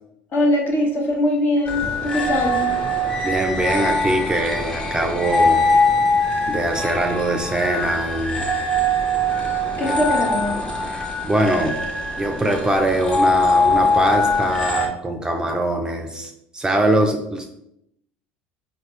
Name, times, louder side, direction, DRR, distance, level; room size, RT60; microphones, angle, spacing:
voice 1, 0.3-2.6 9.8-10.6, left 1 dB, 45° left, 1 dB, 1.0 m, -21 dB
sound 1, 1.6-14.9, left 1 dB, 20° left, 0.9 m, -22 dB
voice 2, 3.2-5.6 6.5-8.5 9.8-9.9 10.8-11.8 12.2-17.5, right 1 dB, 15° right, 3 dB, 0.5 m, -22 dB
4.3 x 2.7 x 3.1 m, 0.80 s
hypercardioid pair, 75°, 5 cm